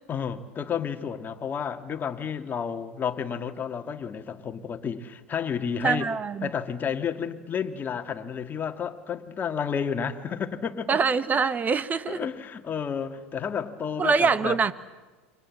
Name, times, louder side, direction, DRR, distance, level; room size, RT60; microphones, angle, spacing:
voice 1, 0.1-6.1 6.4-11.0 12.1-14.6, left 7 dB, 30° left, 2.2 m, -31 dB
voice 2, 5.8-6.5 10.9-12.3 14.0-14.7, right 5 dB, 25° right, 1.4 m, -24 dB
29.0 x 25.0 x 7.6 m
hypercardioid pair, 95°, 7 cm